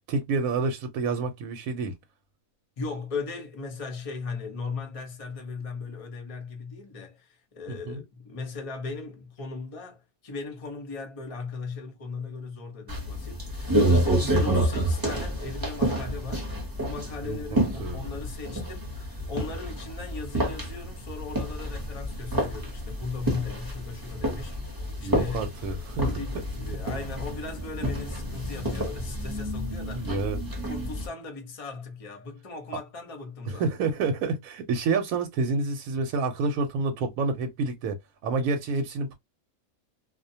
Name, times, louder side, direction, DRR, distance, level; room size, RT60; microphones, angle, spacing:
voice 1, 0.1-1.9 7.7-8.0 14.0-14.3 17.2-18.0 25.0-26.1 30.0-30.4 33.5-39.1, right 4 dB, 75° right, 1.0 m, -29 dB
voice 2, 2.8-16.5 16.8-25.5 25.9-30.2 30.7-33.7, left 4 dB, 35° left, 0.6 m, -38 dB
sound 1, 12.9-31.1, right 1 dB, 20° right, 0.6 m, -29 dB
2.4 x 2.1 x 2.6 m
omnidirectional pair, 1.5 m